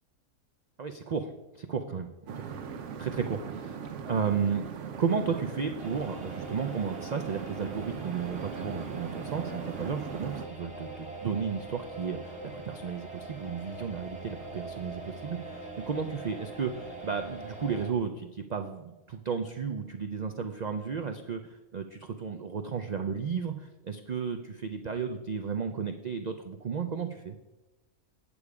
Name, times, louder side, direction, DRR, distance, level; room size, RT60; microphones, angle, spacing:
voice 1, 0.8-2.1 3.0-3.8 4.1-4.6 5.0-27.4, right 6 dB, 85° right, 6 dB, 0.3 m, -33 dB
sound 1, 2.3-10.5, right 6 dB, 65° right, 1.0 m, -40 dB
sound 2, 5.8-17.9, right 2 dB, 5° right, 1.8 m, -43 dB
8.7 x 6.9 x 4.8 m, 1.1 s
omnidirectional pair, 1.4 m